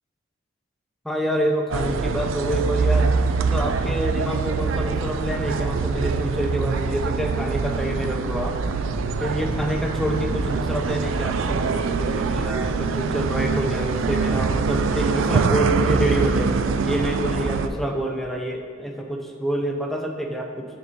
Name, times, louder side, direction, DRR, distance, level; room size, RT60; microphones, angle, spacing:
voice 1, 1.0-3.1 3.4-8.6 9.2-16.5 16.8-20.7, right 1 dB, ahead, 1 dB, 0.7 m, -27 dB
sound 1, 1.7-17.7, right 4 dB, 90° right, 0.4 m, -24 dB
7.8 x 5.5 x 4.3 m, 2.2 s
head